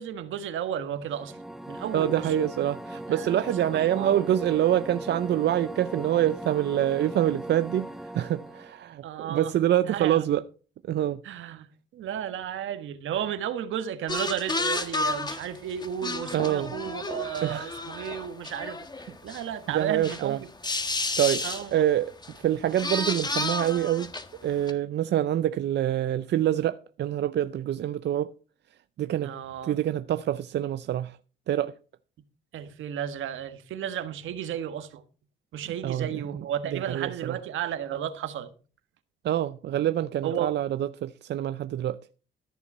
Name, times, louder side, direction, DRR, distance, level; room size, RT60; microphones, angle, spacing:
voice 1, 0.0-1.4 1.7-2.3 3.1-4.2 9.0-9.5 9.9-10.3 11.2-11.7 11.9-18.8 19.2-20.5 21.4-21.8 29.2-29.7 32.5-35.0 35.5-38.5 40.2-40.5, right 9 dB, 80° right, 1.4 m, -33 dB
sound 1, 1.0-8.8, right 1 dB, ahead, 0.9 m, -39 dB
voice 2, 1.9-10.4 10.9-11.2 16.3-16.7 17.4-17.7 19.7-20.4 21.2-21.4 21.7-24.1 24.4-28.3 29.0-29.3 29.6-31.2 31.5-31.7 35.8-36.4 36.7-37.4 39.2-42.0, right 11 dB, 60° right, 0.6 m, -26 dB
sound 2, 14.1-19.4 19.8-20.2 20.6-21.7 22.2-22.4 22.6-24.4 24.7-24.8, left 2 dB, 20° left, 1.5 m, -31 dB
14.0 x 7.0 x 5.5 m
cardioid pair, 90°, 20 cm